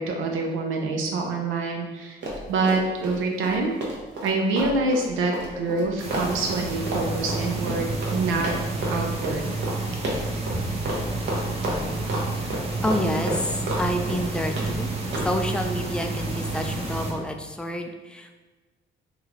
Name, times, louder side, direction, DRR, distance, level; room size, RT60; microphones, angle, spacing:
voice 1, 0.0-2.2 2.5-3.7 4.2-8.5 8.9-9.4, right 3 dB, 85° right, 1 dB, 0.5 m, -26 dB
Run, 2.2-3.2 3.4-8.2 8.4-9.0 9.2-9.4 9.6-9.8 10.0-10.6 10.9-11.0 11.3-12.2 12.5-13.8 14.1-14.7 15.1-15.3, right 1 dB, 65° right, 0.9 m, -30 dB
sound 1, 6.0-17.1, right 2 dB, 30° right, 0.8 m, -30 dB
voice 2, 12.8-14.9 15.2-18.4, equal, 5° left, 4 dB, 0.3 m, -29 dB
3.1 x 2.2 x 3.7 m, 1.2 s
cardioid pair, 90°, 20 cm